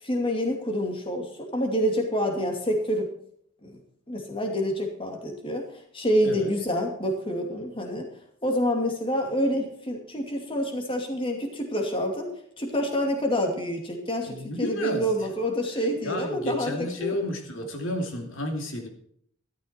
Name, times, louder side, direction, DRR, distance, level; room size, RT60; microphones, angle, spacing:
voice 1, 0.0-3.1 3.6-3.8 4.1-5.7 5.9-8.1 8.4-12.3 12.6-17.2, equal, 25° left, 3 dB, 2.6 m, -27 dB
voice 2, 14.3-15.1 16.0-18.9, left 1 dB, 90° left, 3 dB, 2.7 m, -31 dB
13.5 x 13.0 x 4.4 m, 0.65 s
head